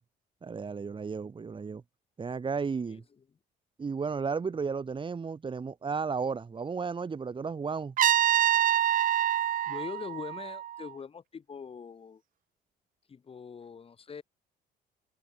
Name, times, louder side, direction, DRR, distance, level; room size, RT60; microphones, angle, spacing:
voice 1, 0.4-1.8 2.2-3.0 3.8-7.9, right 5 dB, 30° right, 6.6 m, -33 dB
Trumpet, 8.0-10.9, right 11 dB, 55° right, 1.0 m, -26 dB
voice 2, 9.7-12.2 13.1-14.2, left 6 dB, 35° left, 4.9 m, -42 dB
cardioid pair, 110°, 17 cm